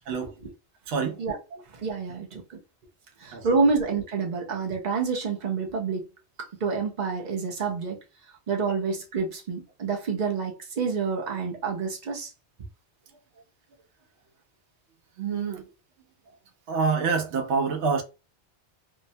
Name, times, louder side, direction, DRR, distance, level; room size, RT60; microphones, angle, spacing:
voice 1, 0.9-1.2 3.3-3.4 15.2-15.6 16.7-18.0, right 5 dB, 80° right, 0.9 m, -26 dB
voice 2, 1.7-2.6 3.2-6.1 6.4-8.0 8.3-12.3, right 4 dB, 45° right, 0.7 m, -28 dB
2.7 x 2.1 x 2.6 m
omnidirectional pair, 1.1 m